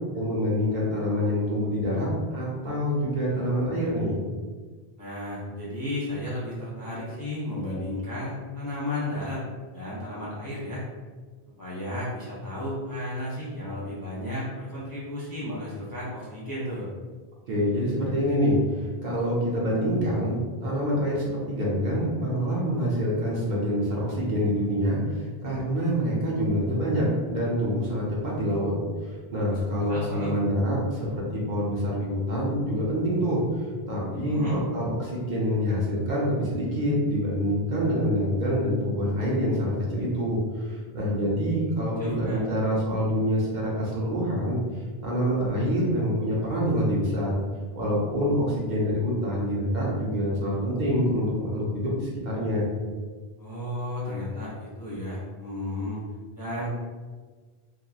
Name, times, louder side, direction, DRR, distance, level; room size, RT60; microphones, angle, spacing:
voice 1, 0.1-4.2 17.5-28.7 29.0-44.6 45.0-47.4 47.8-52.7, equal, 55° right, -5 dB, 0.7 m, -26 dB
voice 2, 5.0-9.4 9.7-10.8 11.6-16.9 29.5-30.3 34.1-34.6 41.9-42.4 53.4-56.0 56.3-56.7, left 1 dB, 30° left, -8 dB, 0.4 m, -33 dB
2.8 x 2.2 x 2.3 m, 1.4 s
omnidirectional pair, 1.0 m